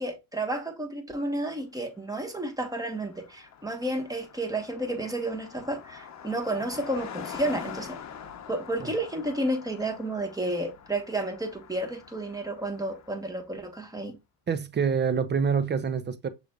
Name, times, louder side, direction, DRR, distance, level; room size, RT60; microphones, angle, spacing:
voice 1, 0.0-8.0 8.5-14.2, right 1 dB, 5° right, 1.3 m, -31 dB
Car passing by, 2.1-2.2 2.4-13.5, left 8 dB, 35° left, 1.0 m, -45 dB
voice 2, 14.5-16.3, right 6 dB, 25° right, 0.5 m, -26 dB
6.3 x 3.4 x 2.4 m
supercardioid pair, 80°, 49 cm